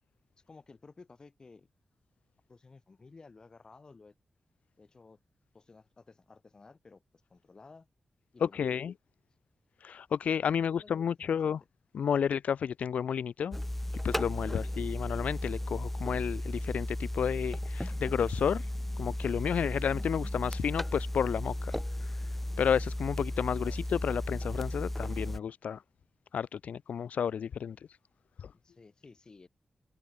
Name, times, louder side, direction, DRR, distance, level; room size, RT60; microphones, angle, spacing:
voice 1, 0.5-1.7 2.5-4.1 4.8-5.2 5.5-7.0 7.3-7.9 8.3-8.8 10.8-11.6 14.5-14.7 23.6-23.8 28.5-29.5, left 4 dB, 35° left, 3.2 m, -55 dB
voice 2, 8.4-8.9 9.8-11.6 11.9-13.6 14.0-18.7 19.0-21.7 22.0-22.2 22.6-25.8 26.3-27.8 28.4-28.5, left 7 dB, 80° left, 0.4 m, -31 dB
sound 1, 13.5-25.4, left 1 dB, 5° left, 0.3 m, -35 dB
wide cardioid pair, 155°, 2 cm